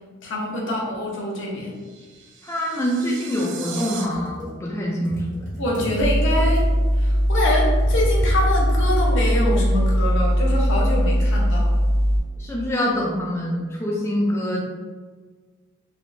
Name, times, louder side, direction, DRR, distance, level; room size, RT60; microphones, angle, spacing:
voice 1, 0.2-1.8 5.6-6.7 7.0-11.7, left 1 dB, 65° left, -2 dB, 0.8 m, -25 dB
sound 1, 1.4-4.1, right 6 dB, 60° right, 0.4 m, -38 dB
voice 2, 2.4-5.5 12.4-14.6, equal, 15° left, -4 dB, 0.4 m, -25 dB
Computer keyboard, 3.9-9.5, equal, 40° right, 1.1 m, -36 dB
sound 2, 6.0-12.2, equal, 80° right, 0.8 m, -19 dB
3.5 x 2.9 x 2.6 m, 1.4 s
head